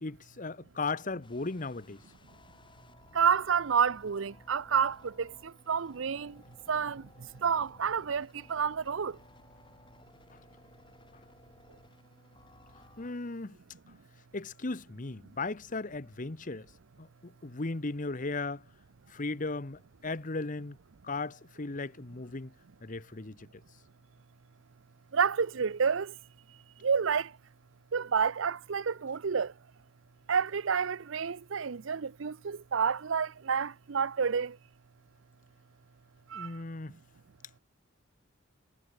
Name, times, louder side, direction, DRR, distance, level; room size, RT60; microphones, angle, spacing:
voice 1, 0.0-2.0 13.0-13.6 14.3-16.7 17.0-18.6 19.1-20.8 21.0-22.5 22.8-23.6 36.3-36.9, left 3 dB, 40° left, 1.0 m, -36 dB
sound 1, 1.2-13.1, left 2 dB, 25° left, 6.1 m, -58 dB
voice 2, 3.1-5.3 5.7-6.3 6.7-7.0 7.4-9.1 25.1-26.1 26.8-27.3 27.9-29.5 30.3-34.5 36.3-36.5, right 6 dB, 70° right, 0.6 m, -29 dB
head